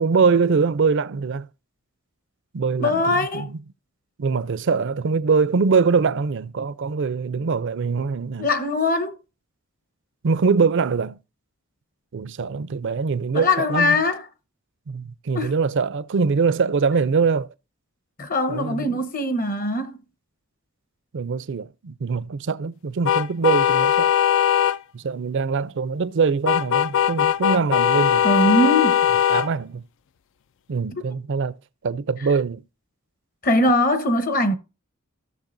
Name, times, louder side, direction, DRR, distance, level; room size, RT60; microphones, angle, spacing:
voice 1, 0.0-1.5 2.5-3.6 4.2-8.5 10.2-11.2 12.1-14.0 14.9-17.5 18.5-19.0 21.1-24.1 24.9-28.3 29.3-29.8 30.7-31.5 31.8-32.6, right 5 dB, 60° right, 0.5 m, -23 dB
voice 2, 2.8-3.5 8.4-9.2 13.3-14.2 15.3-15.6 18.2-20.0 28.2-29.0 31.0-31.1 33.4-34.5, left 1 dB, 45° left, 1.0 m, -21 dB
sound 1, 23.0-24.8 26.5-29.5, left 9 dB, 60° left, 0.3 m, -19 dB
14.5 x 6.6 x 2.6 m
head